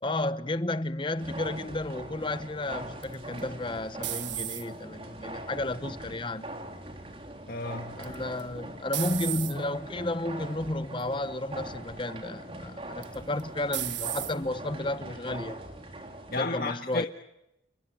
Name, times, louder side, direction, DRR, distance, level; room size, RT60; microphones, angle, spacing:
voice 1, 0.0-6.5 8.0-15.6 16.3-17.1, left 1 dB, 25° left, 1.0 m, -32 dB
sound 1, 1.1-16.4, right 1 dB, 30° right, 3.7 m, -42 dB
sound 2, 3.0-4.9 5.5-6.0 8.0-8.4 8.9-9.5 10.3-10.6 11.0-11.1 13.0-13.4 13.7-14.3, right 13 dB, 90° right, 1.6 m, -34 dB
voice 2, 7.5-8.0 16.3-17.1, left 3 dB, 55° left, 1.6 m, -32 dB
29.5 x 20.5 x 9.0 m
head